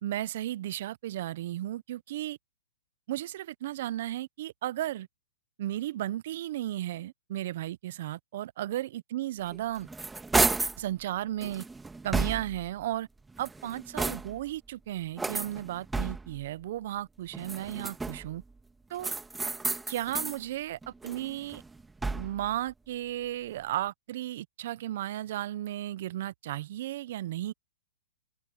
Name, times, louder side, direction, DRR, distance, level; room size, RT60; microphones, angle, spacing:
voice 1, 0.0-2.4 3.1-5.1 5.6-9.9 10.8-11.7 12.0-13.1 13.4-18.4 18.9-19.1 19.9-21.6 22.1-27.5, right 13 dB, 55° right, 0.9 m, -34 dB
sound 1, 9.5-10.8 11.4-12.7 13.3-14.5 15.2-16.4 17.3-18.4 19.0-20.4 20.8-22.5, right 3 dB, 10° right, 2.0 m, -32 dB
open air
hypercardioid pair, 135°, 0 cm